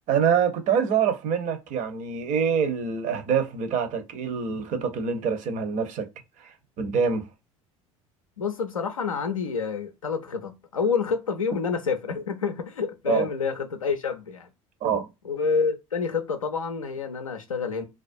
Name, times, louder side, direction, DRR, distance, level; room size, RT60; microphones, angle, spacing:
voice 1, 0.1-6.1 6.4-7.2 13.1-13.3 14.8-15.1, right 7 dB, 45° right, 0.6 m, -25 dB
voice 2, 8.4-14.5 15.2-17.8, left 5 dB, 90° left, 0.4 m, -28 dB
2.3 x 2.1 x 2.5 m
figure-of-eight pair, 65°, 17 cm